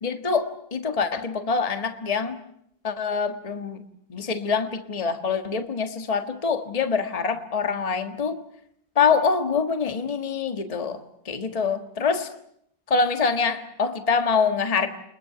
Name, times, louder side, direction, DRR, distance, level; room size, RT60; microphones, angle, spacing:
voice 1, 0.0-2.4 2.8-3.8 4.1-8.4 8.9-12.3 12.9-14.9, left 5 dB, 20° left, 8 dB, 1.5 m, -25 dB
28.5 x 22.0 x 6.9 m, 0.73 s
omnidirectional pair, 2.0 m